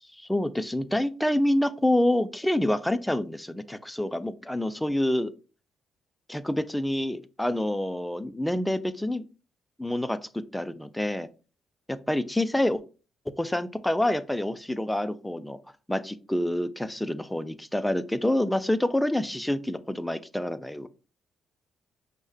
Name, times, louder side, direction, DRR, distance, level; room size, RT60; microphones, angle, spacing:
voice 1, 0.2-5.3 6.3-9.2 9.8-11.3 11.9-12.8 13.3-15.6 15.9-20.9, left 1 dB, 5° left, 13 dB, 0.4 m, -27 dB
5.3 x 2.1 x 3.3 m, 0.34 s
cardioid pair, 90°, 0 cm